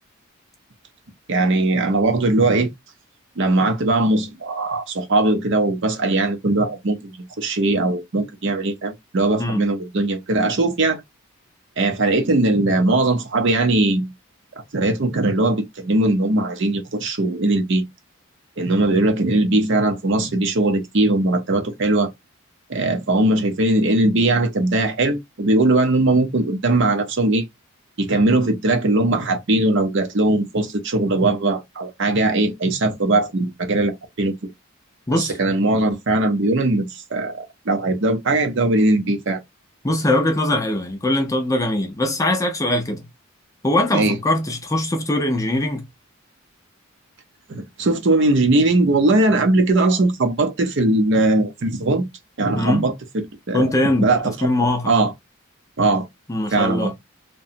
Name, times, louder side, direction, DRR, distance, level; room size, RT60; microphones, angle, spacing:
voice 1, 1.3-2.7 3.4-11.0 11.8-14.1 14.7-17.8 18.6-22.1 22.7-27.5 28.0-34.3 35.1-39.4 43.9-44.2 47.5-52.1 52.4-52.9 53.5-53.7 54.0-54.5 54.9-55.1 55.8-56.1 56.5-56.9, right 2 dB, 55° right, 0.6 m, -20 dB
voice 2, 39.8-43.1 43.6-45.9 52.6-52.9 53.5-54.1 54.4-54.9 56.3-56.9, left 1 dB, 15° left, 0.4 m, -21 dB
2.8 x 2.2 x 2.5 m
head